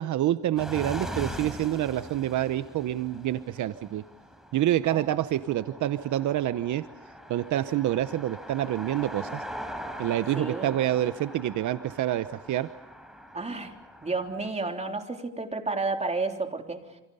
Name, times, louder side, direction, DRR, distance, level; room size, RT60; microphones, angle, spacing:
voice 1, 0.0-4.0 4.5-6.8 7.3-9.4 10.0-12.7, right 13 dB, 75° right, 12 dB, 0.9 m, -27 dB
sound 1, 0.6-14.5, equal, ahead, 5.0 m, -41 dB
voice 2, 10.4-10.7 13.3-13.7 14.0-17.0, right 3 dB, 20° right, 4 dB, 3.5 m, -31 dB
28.5 x 27.0 x 5.5 m, 0.89 s
cardioid pair, 90°, 30 cm